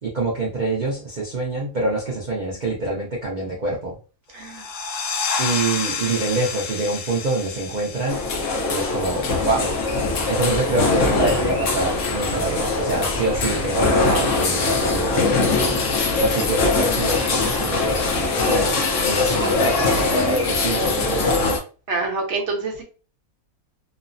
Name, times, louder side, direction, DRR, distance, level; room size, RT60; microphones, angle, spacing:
voice 1, 0.0-4.0 5.4-8.2 8.7-9.7 10.3-15.8 16.1-18.1 18.5-18.8 19.1-21.6, right 2 dB, 85° right, -3 dB, 0.4 m, -25 dB
voice 2, 4.3-4.7 21.9-22.8, right 3 dB, 55° right, 1 dB, 1.0 m, -26 dB
sound 1, 4.4-9.7, left 5 dB, 85° left, 1.1 m, -30 dB
sound 2, 8.1-21.6, left 3 dB, 60° left, 0.9 m, -22 dB
sound 3, 9.5-20.7, equal, 35° left, 0.9 m, -34 dB
3.1 x 2.0 x 2.5 m, 0.36 s
omnidirectional pair, 1.6 m